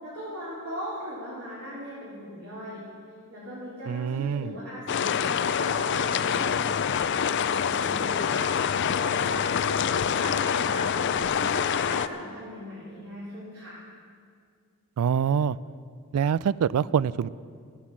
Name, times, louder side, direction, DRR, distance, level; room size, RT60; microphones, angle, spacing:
voice 1, 0.0-2.8 3.3-6.9 7.1-8.7 8.9-11.1 11.3-13.8, equal, 65° right, -11 dB, 3.8 m, -39 dB
voice 2, 3.9-4.5 15.0-15.6 16.1-17.3, right 7 dB, 80° right, 19 dB, 0.3 m, -25 dB
sound 1, 4.9-12.1, left 7 dB, 50° left, 0.4 m, -26 dB
13.0 x 10.0 x 7.3 m, 2.1 s
head